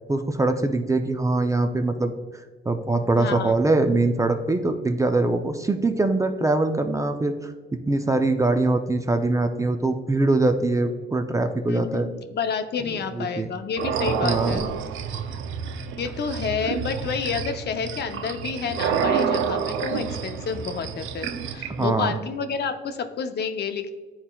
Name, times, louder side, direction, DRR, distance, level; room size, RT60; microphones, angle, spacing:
voice 1, 0.1-2.1 2.7-12.1 13.2-13.5 14.2-14.7 21.7-22.2, right 2 dB, 15° right, 7 dB, 0.4 m, -23 dB
voice 2, 3.1-3.6 11.7-14.7 16.0-23.9, left 6 dB, 55° left, 7 dB, 0.6 m, -29 dB
sound 1, 13.8-21.8, right 7 dB, 80° right, 0.5 m, -29 dB
10.0 x 4.3 x 2.3 m, 1.4 s
cardioid pair, 90°, 20 cm